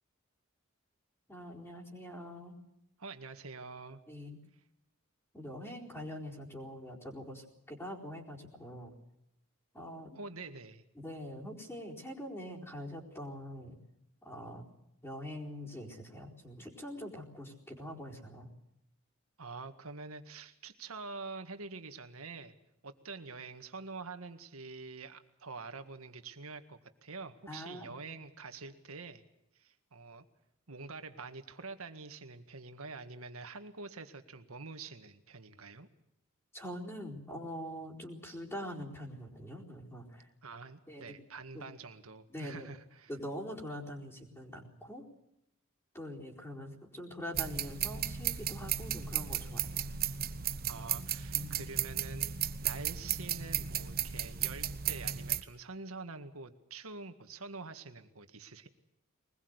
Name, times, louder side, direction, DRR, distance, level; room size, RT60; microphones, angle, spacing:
voice 1, 1.3-2.6 4.1-4.4 5.3-8.9 9.7-10.2 11.0-13.8 14.2-14.7 15.0-18.5 27.5-27.9 36.5-40.3 40.9-41.0 41.5-41.7 42.3-42.7 43.1-45.0 45.9-49.9 51.3-51.7, equal, 10° left, -3 dB, 4.4 m, -44 dB
voice 2, 3.0-4.0 10.1-10.8 19.4-22.6 22.8-29.2 29.5-30.2 30.7-35.9 40.4-43.1 50.7-52.4 52.6-58.7, right 3 dB, 90° right, 8 dB, 1.9 m, -46 dB
sound 1, 47.3-55.4, right 10 dB, 45° right, 1.1 m, -35 dB
23.0 x 20.5 x 8.1 m, 0.83 s
head